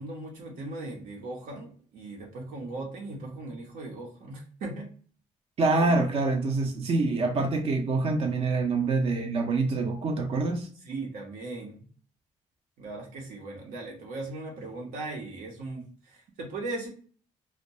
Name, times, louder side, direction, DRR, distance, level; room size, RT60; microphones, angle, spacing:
voice 1, 0.0-4.9 5.8-6.1 7.0-7.4 10.8-11.8 12.8-16.9, right 2 dB, 85° right, 0 dB, 0.8 m, -38 dB
voice 2, 5.6-10.7, right 3 dB, 45° right, 4 dB, 0.5 m, -26 dB
2.2 x 2.1 x 2.7 m, 0.43 s
cardioid pair, 95°, 14 cm